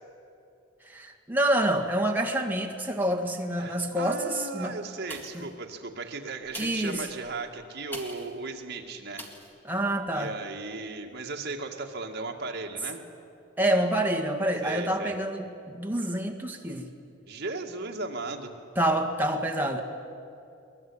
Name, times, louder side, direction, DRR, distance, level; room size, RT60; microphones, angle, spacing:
voice 1, 0.9-4.7 5.3-5.5 6.6-7.0 9.6-10.3 13.6-16.9 18.8-19.8, right 1 dB, 10° right, 2 dB, 1.8 m, -27 dB
voice 2, 3.6-9.3 10.1-13.0 14.6-15.1 17.3-18.5, right 3 dB, 50° right, 2 dB, 2.2 m, -36 dB
sound 1, 5.1-5.6 6.4-8.4 9.2-9.5 10.1-10.2, equal, 10° left, 2.2 m, -43 dB
23.0 x 20.5 x 8.8 m, 2.7 s
head